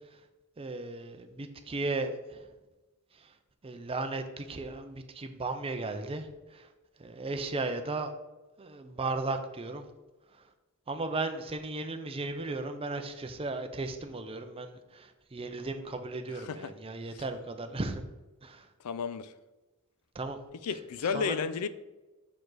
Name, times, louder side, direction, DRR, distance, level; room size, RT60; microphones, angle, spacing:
voice 1, 0.6-2.4 3.6-6.7 7.0-8.1 8.6-9.8 10.9-18.0 18.4-18.7 20.1-20.4 21.1-21.3, right 3 dB, 25° right, 7 dB, 0.6 m, -35 dB
voice 2, 16.3-16.7 17.1-17.2 18.8-19.3 20.6-21.7, left 6 dB, 90° left, 14 dB, 0.4 m, -33 dB
6.2 x 4.9 x 3.9 m, 1.1 s
head